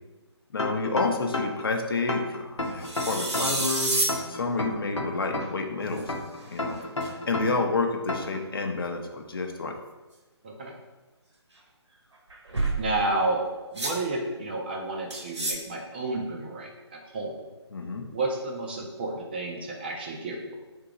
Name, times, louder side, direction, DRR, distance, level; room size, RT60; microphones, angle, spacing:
voice 1, 0.5-4.0 4.3-6.1 6.5-9.7 17.7-18.1, left 3 dB, 55° left, 4 dB, 0.7 m, -29 dB
sound 1, 0.6-1.7 2.1-3.7 4.1-5.7 6.1-7.7 8.1-8.4, left 2 dB, 85° left, 0.8 m, -31 dB
sound 2, 2.8-4.2 5.4-5.5 6.0-6.1 6.8-7.1 12.3-12.9 13.8-14.0 15.1-15.5, right 2 dB, 75° right, 1.2 m, -28 dB
voice 2, 10.4-10.7 12.8-13.5 13.7-17.4 18.1-20.5, right 2 dB, 20° right, 0 dB, 0.4 m, -31 dB
3.7 x 2.8 x 4.7 m, 1.1 s
figure-of-eight pair, 145°, 15 cm